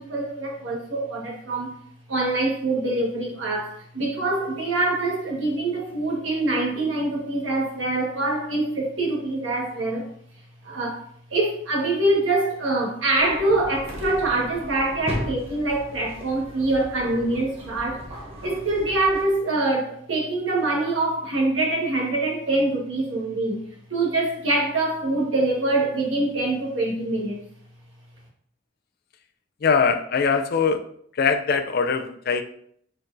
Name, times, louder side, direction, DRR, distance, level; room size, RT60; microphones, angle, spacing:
voice 1, 0.0-1.7 2.1-10.1 10.6-18.1 18.4-23.6 23.9-27.4, right 2 dB, 80° right, -2 dB, 1.4 m, -24 dB
sound 1, 13.2-19.2, equal, 30° right, 0.9 m, -37 dB
voice 2, 29.6-30.8 31.1-32.4, left 5 dB, 50° left, 9 dB, 0.4 m, -22 dB
4.4 x 4.3 x 2.6 m, 0.64 s
head